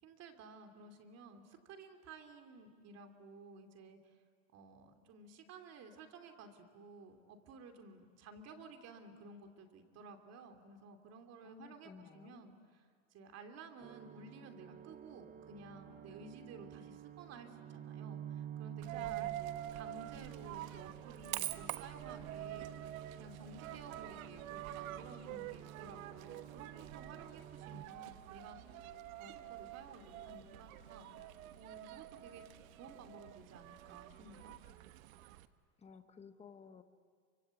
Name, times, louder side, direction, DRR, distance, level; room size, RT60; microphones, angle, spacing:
voice 1, 0.0-4.2 4.5-12.8 13.1-28.6 29.2-31.3 31.5-32.4 32.7-34.5, right 3 dB, 40° right, 5 dB, 2.8 m, -54 dB
voice 2, 11.4-12.5 18.9-19.2 35.8-36.8, left 6 dB, 15° left, 8 dB, 1.2 m, -56 dB
sound 1, 13.8-27.8, right 10 dB, 20° right, 0.8 m, -51 dB
Coin (dropping), 18.8-35.5, right 14 dB, 80° right, 1.3 m, -47 dB
sound 2, 22.1-32.9, left 4 dB, 50° left, 6.5 m, -67 dB
28.0 x 25.0 x 8.3 m, 2.1 s
supercardioid pair, 145°, 41 cm